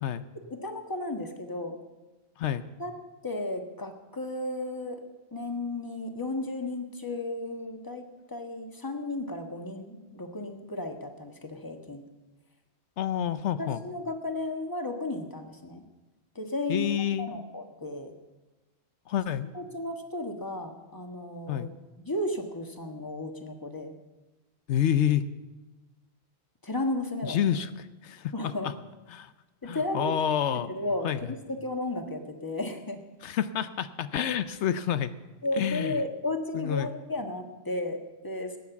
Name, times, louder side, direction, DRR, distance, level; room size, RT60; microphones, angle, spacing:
voice 1, 0.5-1.8 2.8-2.9 3.2-5.0 5.3-12.0 13.6-15.8 16.3-16.9 17.2-18.1 19.5-21.7 22.0-23.9 26.6-27.4 28.3-28.7 29.6-30.2 30.7-33.0 35.4-38.6, left 2 dB, 20° left, 4 dB, 1.5 m, -34 dB
voice 2, 13.0-13.8 16.7-17.3 19.1-19.5 21.5-21.7 24.7-25.3 27.2-28.7 29.1-29.3 29.7-30.7 31.0-31.3 33.2-35.1 35.5-36.0 36.5-36.9, left 10 dB, 90° left, 12 dB, 1.0 m, -28 dB
17.5 x 9.6 x 7.0 m, 1.2 s
omnidirectional pair, 1.1 m